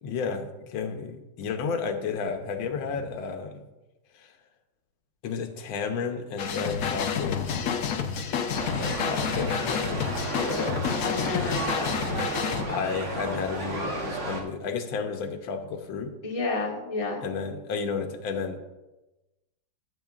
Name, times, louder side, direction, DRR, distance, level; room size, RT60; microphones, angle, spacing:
voice 1, 0.0-3.6 4.1-4.3 5.2-7.4 8.7-10.0 10.3-10.8 12.7-16.1 17.2-18.6, left 5 dB, 90° left, 6 dB, 1.6 m, -32 dB
sound 1, 6.4-12.6, left 7 dB, 65° left, 0.9 m, -29 dB
sound 2, 8.5-14.4, right 3 dB, 45° right, 1.2 m, -33 dB
voice 2, 11.0-12.2 16.2-17.2, left 3 dB, 20° left, -1 dB, 1.1 m, -31 dB
12.5 x 7.2 x 2.4 m, 1.0 s
omnidirectional pair, 2.1 m